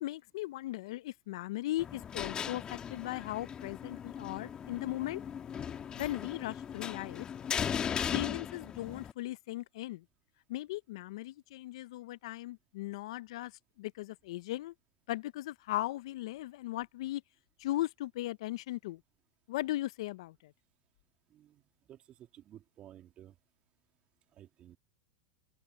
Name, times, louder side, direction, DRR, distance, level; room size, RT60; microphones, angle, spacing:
voice 1, 0.0-5.2 5.9-7.3 8.1-10.0 10.5-13.5 13.8-14.7 15.1-17.2 17.6-19.0 19.5-20.5, left 16 dB, 70° left, 0.6 m, -38 dB
sound 1, 1.8-9.1, left 8 dB, 25° left, 2.3 m, -38 dB
voice 2, 22.3-23.3 24.4-24.8, right 12 dB, 35° right, 2.8 m, -54 dB
hypercardioid pair, 110°, 3 cm